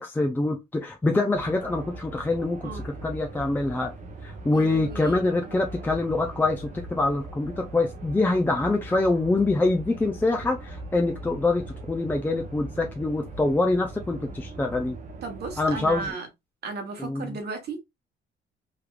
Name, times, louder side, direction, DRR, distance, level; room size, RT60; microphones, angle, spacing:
voice 1, 0.0-3.9 4.2-15.0 15.6-16.1 17.0-17.4, left 2 dB, 10° left, 0.4 m, -25 dB
sound 1, 1.3-16.1, right 2 dB, 40° right, 0.8 m, -40 dB
voice 2, 4.5-5.3 15.2-16.3 16.6-17.8, right 4 dB, 55° right, 1.2 m, -35 dB
3.4 x 3.2 x 2.4 m
cardioid pair, 155°, 20 cm